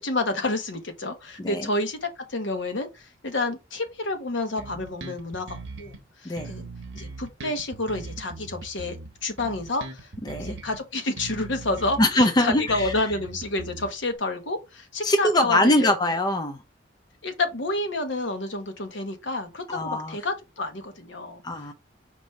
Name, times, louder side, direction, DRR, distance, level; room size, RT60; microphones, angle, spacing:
voice 1, 0.0-5.9 6.2-6.6 6.9-10.1 10.4-15.9 17.2-21.4, left 2 dB, 65° left, 1.1 m, -29 dB
voice 2, 1.4-1.7 6.2-6.5 10.2-10.5 12.0-12.9 15.0-16.6 19.7-20.2 21.4-21.7, left 1 dB, 20° left, 0.5 m, -23 dB
Bass guitar, 4.6-6.0 6.4-10.8 11.2-14.2, right 3 dB, 65° right, 1.1 m, -40 dB
5.1 x 3.3 x 3.2 m
head